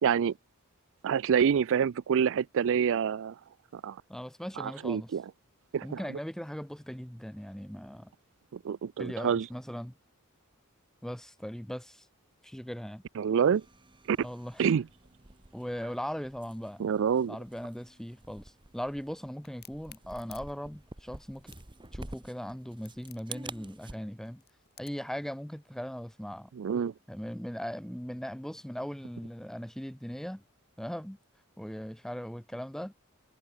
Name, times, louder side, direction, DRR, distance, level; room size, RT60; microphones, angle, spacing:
voice 1, 0.0-0.3 1.0-3.3 3.7-4.0 4.6-5.2 5.7-6.0 8.5-9.5 13.2-13.6 14.1-14.2 14.6-14.8 16.8-17.4 26.6-26.9, right 7 dB, 60° right, 0.4 m, -27 dB
voice 2, 4.1-5.1 5.8-8.1 9.0-9.9 11.0-12.0 12.4-13.0 14.2-14.7 15.5-16.8 17.3-21.5 21.9-24.4 24.8-26.5 27.1-30.4 30.8-31.2 31.6-32.9, equal, ahead, 0.9 m, -39 dB
sound 1, 13.5-24.0, right 2 dB, 20° right, 1.4 m, -49 dB
Crack, 19.4-25.1, left 13 dB, 45° left, 5.6 m, -55 dB
head